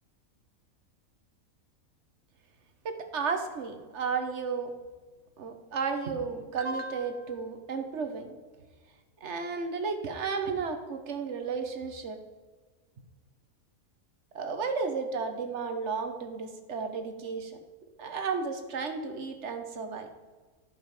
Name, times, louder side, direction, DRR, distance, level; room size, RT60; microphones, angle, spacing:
voice 1, 2.8-4.7 5.4-8.3 9.2-12.2 14.3-17.6 18.0-20.1, right 5 dB, 55° right, 6 dB, 1.4 m, -33 dB
13.5 x 5.4 x 4.9 m, 1.4 s
omnidirectional pair, 1.5 m